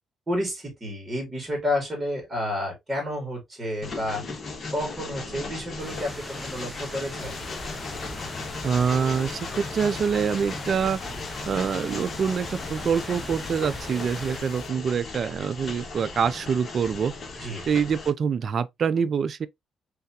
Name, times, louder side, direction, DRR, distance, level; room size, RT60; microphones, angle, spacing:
voice 1, 0.3-4.2 4.7-7.4 17.4-17.7, left 1 dB, 25° right, 2.4 m, -30 dB
Train, 3.8-18.1, left 3 dB, 40° left, 1.4 m, -37 dB
sound 1, 5.8-14.4, equal, ahead, 0.6 m, -41 dB
sound 2, 7.2-14.7, left 5 dB, 70° left, 0.9 m, -41 dB
voice 2, 8.6-11.0 11.5-17.1 17.7-19.5, right 6 dB, 50° right, 0.4 m, -25 dB
3.5 x 3.2 x 2.8 m
cardioid pair, 90°, 0 cm